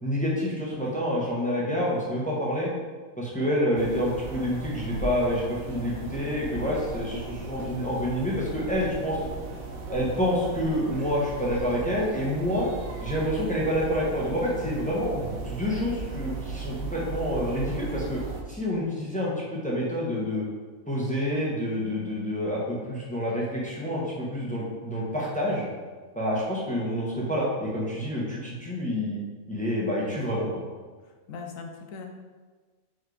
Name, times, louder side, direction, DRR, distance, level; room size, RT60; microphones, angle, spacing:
voice 1, 0.0-2.7 3.2-9.2 9.9-12.7 13.0-18.2 18.5-20.4 20.9-25.7 26.1-29.2 29.5-30.5, equal, 5° left, -5 dB, 1.1 m, -28 dB
sound 1, 3.8-18.4, right 4 dB, 70° right, 1.1 m, -37 dB
voice 2, 31.1-32.1, left 4 dB, 65° left, 3 dB, 1.1 m, -40 dB
4.8 x 4.4 x 4.8 m, 1.4 s
omnidirectional pair, 1.6 m